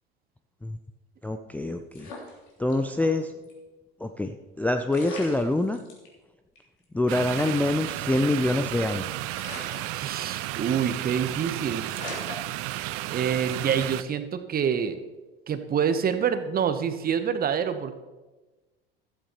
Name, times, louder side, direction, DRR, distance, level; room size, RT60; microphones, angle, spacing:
voice 1, 1.2-2.1 2.6-3.3 4.0-5.8 6.9-9.1, left 2 dB, 5° left, 5 dB, 0.5 m, -25 dB
sound 1, 1.9-3.1 3.4-3.5 4.6-4.7 4.9-6.1 6.6-6.7 6.8-6.9 7.3-8.8 9.3-10.6 10.9-11.2 11.5-11.6 11.9-13.2 13.7-14.0, left 3 dB, 65° left, 3.3 m, -42 dB
sound 2, 7.1-14.0, right 17 dB, 50° right, 0.5 m, -33 dB
voice 2, 9.9-11.9 13.1-15.0 15.5-18.0, right 7 dB, 30° right, 10 dB, 1.0 m, -26 dB
14.5 x 12.5 x 3.0 m, 1.2 s
hypercardioid pair, 75°, 30 cm